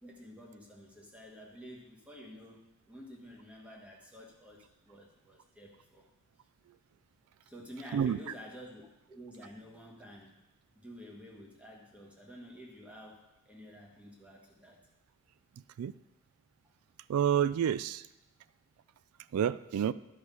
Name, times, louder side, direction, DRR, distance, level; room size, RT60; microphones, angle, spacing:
voice 1, 0.0-6.1 7.4-10.3 10.7-14.8, equal, 5° right, -2 dB, 1.4 m, -50 dB
voice 2, 17.1-18.0 19.3-19.9, right 9 dB, 80° right, 16 dB, 0.3 m, -28 dB
12.0 x 4.8 x 5.4 m, 0.92 s
head